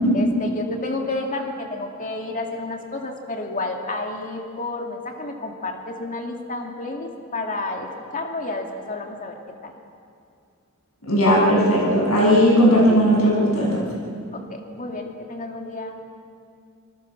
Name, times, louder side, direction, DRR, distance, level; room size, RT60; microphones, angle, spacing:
voice 1, 0.1-9.7 14.3-16.0, left 2 dB, 40° left, 2 dB, 2.4 m, -31 dB
voice 2, 11.1-13.8, equal, 90° left, -3 dB, 7.5 m, -17 dB
27.0 x 20.0 x 6.1 m, 2.4 s
head